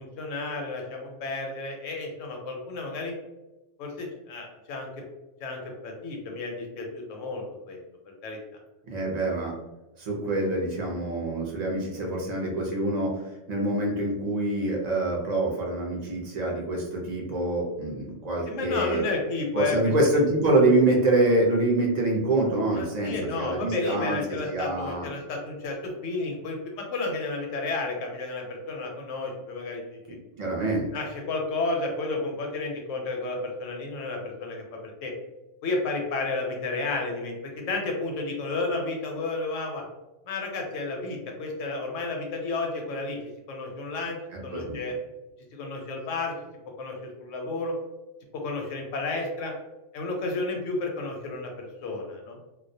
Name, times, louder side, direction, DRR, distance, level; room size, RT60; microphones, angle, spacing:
voice 1, 0.0-3.1 3.8-4.9 5.4-7.8 8.2-8.4 18.5-19.9 22.7-30.2 30.9-35.1 35.6-39.8 40.3-43.2 43.5-44.2 44.4-44.9 45.5-46.3 46.8-47.7 48.3-49.5 49.9-52.4, left 3 dB, 85° left, 1 dB, 1.0 m, -32 dB
voice 2, 8.9-9.5 10.0-13.2 13.5-19.0 19.5-24.2 24.5-25.1 30.4-30.9 44.5-44.8, right 2 dB, 50° right, -1 dB, 0.5 m, -25 dB
2.3 x 2.1 x 2.6 m, 1.0 s
omnidirectional pair, 1.3 m